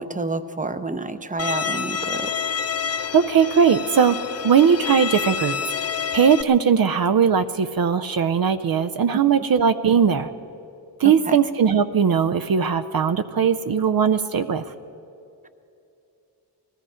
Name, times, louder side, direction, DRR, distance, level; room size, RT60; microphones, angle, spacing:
voice 1, 0.0-2.3 11.3-11.4, right 3 dB, 20° right, 11 dB, 0.6 m, -29 dB
Bowed string instrument, 1.4-6.4, left 7 dB, 40° left, 0.4 m, -28 dB
voice 2, 3.1-4.2 4.4-5.6 6.1-10.3 11.0-14.6, right 7 dB, 60° right, 11 dB, 0.6 m, -19 dB
19.5 x 14.0 x 5.0 m, 2.8 s
wide cardioid pair, 90°, 41 cm